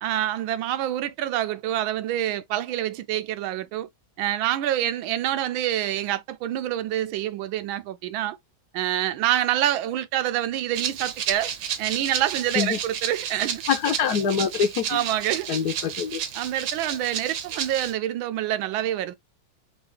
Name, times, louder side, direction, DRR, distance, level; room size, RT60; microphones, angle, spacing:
voice 1, 0.0-3.9 4.2-8.4 8.7-11.5 11.8-13.6 14.9-15.5 16.3-19.1, right 12 dB, 90° right, 1.4 m, -26 dB
Rattle (instrument), 10.7-17.9, right 8 dB, 65° right, 1.1 m, -32 dB
voice 2, 13.7-15.0 15.5-16.2, left 7 dB, 65° left, 1.1 m, -24 dB
3.8 x 2.4 x 3.2 m
omnidirectional pair, 2.1 m